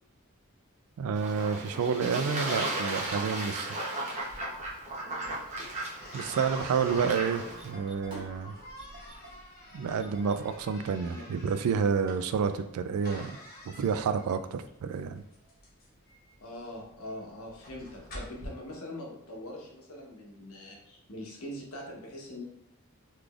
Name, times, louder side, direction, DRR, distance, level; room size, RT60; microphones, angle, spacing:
voice 1, 1.0-3.8 6.1-8.5 9.7-13.4 13.7-15.2, right 6 dB, 85° right, 11 dB, 0.3 m, -29 dB
Fowl / Bird / Water, 1.1-7.7, right 2 dB, 30° right, 0.8 m, -35 dB
sound 1, 4.3-18.5, equal, 45° left, 1.0 m, -48 dB
voice 2, 5.0-5.3 11.1-11.2 16.4-22.4, left 1 dB, 75° left, -1 dB, 1.0 m, -43 dB
Engine starting, 6.5-11.4, equal, 50° right, 1.3 m, -51 dB
3.7 x 3.2 x 2.4 m, 0.72 s
head